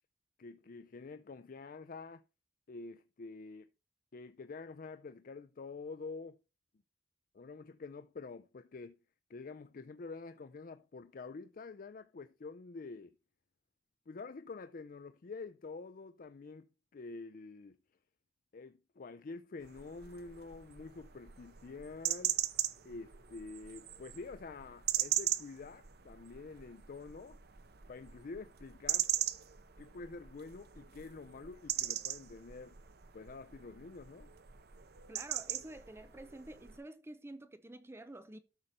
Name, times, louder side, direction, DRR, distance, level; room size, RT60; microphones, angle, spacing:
voice 1, 0.4-2.2 2.7-3.7 4.1-6.4 7.3-9.0 9.3-13.2 14.1-17.8 18.5-22.4 22.8-27.4 27.9-29.1 29.8-32.8 33.1-34.3, left 4 dB, 50° left, 0.5 m, -47 dB
sound 1, 19.6-36.8, right 12 dB, 65° right, 0.8 m, -40 dB
voice 2, 35.1-38.4, right 1 dB, 15° right, 0.6 m, -49 dB
12.5 x 6.6 x 4.2 m
head